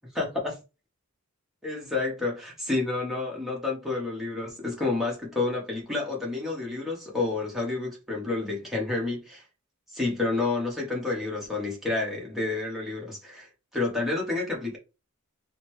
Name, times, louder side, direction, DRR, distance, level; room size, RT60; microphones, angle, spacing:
voice 1, 0.1-0.6 1.6-9.4 9.9-14.8, left 3 dB, ahead, 1.3 m, -29 dB
3.7 x 2.3 x 3.1 m
head